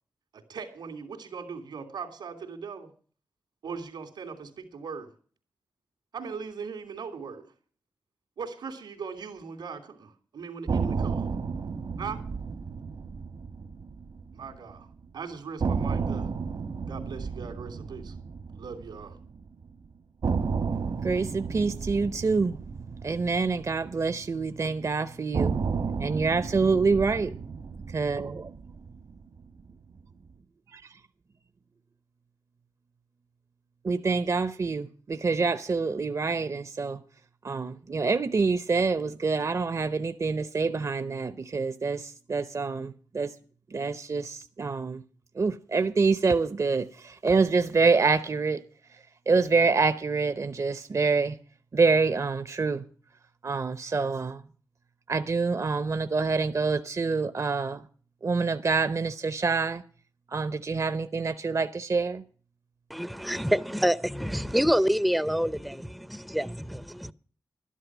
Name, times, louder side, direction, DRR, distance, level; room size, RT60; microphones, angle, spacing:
voice 1, 0.3-2.9 3.6-5.1 6.1-7.4 8.4-11.3 12.0-12.2 14.3-16.3 16.9-18.2 18.6-19.2, right 5 dB, 90° right, 2.9 m, -39 dB
sound 1, 10.7-14.8 15.0-15.1 15.6-19.7 20.2-24.6 25.3-29.7, right 5 dB, 70° right, 1.3 m, -32 dB
voice 2, 20.7-22.6 23.0-25.6 26.0-27.3 27.9-28.5 30.7-30.9 33.8-37.0 37.4-43.3 43.7-45.0 45.3-48.6 48.9-49.0 49.3-51.4 51.7-52.8 53.4-54.4 55.1-57.9 58.2-59.8 60.3-62.2, right 4 dB, 45° right, 0.7 m, -26 dB
voice 3, 62.9-67.1, equal, ahead, 0.6 m, -27 dB
12.0 x 11.0 x 6.1 m
cardioid pair, 55°, 7 cm